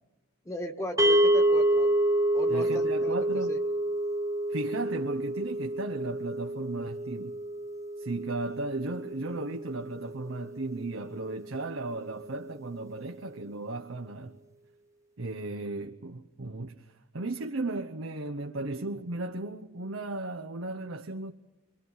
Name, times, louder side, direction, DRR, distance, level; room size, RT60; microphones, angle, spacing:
voice 1, 0.5-2.0 2.3-3.2 3.5-3.6, equal, 15° left, 1.7 m, -37 dB
sound 1, 1.0-11.3, right 1 dB, 15° right, 1.0 m, -28 dB
voice 2, 2.5-3.6 4.5-7.4 8.0-14.4 15.2-16.8 17.1-21.3, right 2 dB, 65° right, 0.9 m, -35 dB
29.5 x 23.5 x 5.6 m
head